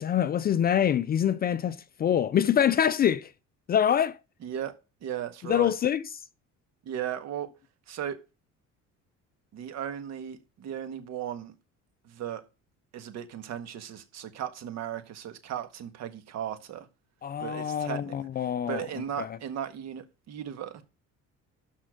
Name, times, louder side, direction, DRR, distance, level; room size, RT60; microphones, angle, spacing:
voice 1, 0.0-3.3 3.7-4.2 5.4-6.0 17.2-18.8 19.2-19.3, left 9 dB, 30° left, 0.4 m, -25 dB
voice 2, 4.4-4.7 5.0-5.7 6.8-7.5 7.9-8.2 9.5-11.5 12.0-12.4 12.9-16.9 17.4-18.1 18.7-20.8, right 10 dB, 60° right, 1.6 m, -36 dB
12.5 x 4.3 x 5.1 m
cardioid pair, 150°, 30 cm